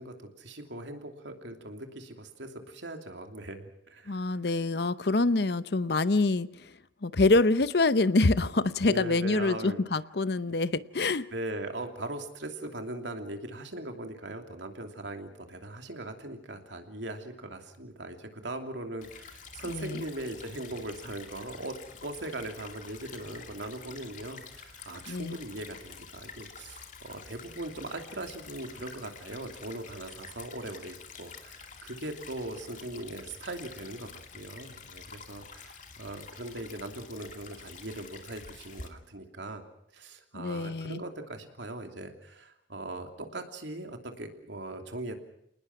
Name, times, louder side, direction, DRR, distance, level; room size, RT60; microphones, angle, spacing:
voice 1, 0.0-4.4 8.8-9.8 10.5-10.6 11.3-21.7 22.0-39.6 39.9-45.2, right 1 dB, 80° right, 5 dB, 2.9 m, -40 dB
voice 2, 4.1-6.7 7.0-11.3 19.7-20.0 25.1-25.4 40.3-41.0, left 3 dB, 60° left, 15 dB, 0.8 m, -26 dB
Stream / Trickle dribble, 19.0-38.9, left 5 dB, 45° left, 2.4 m, -48 dB
28.0 x 19.5 x 6.0 m, 0.75 s
head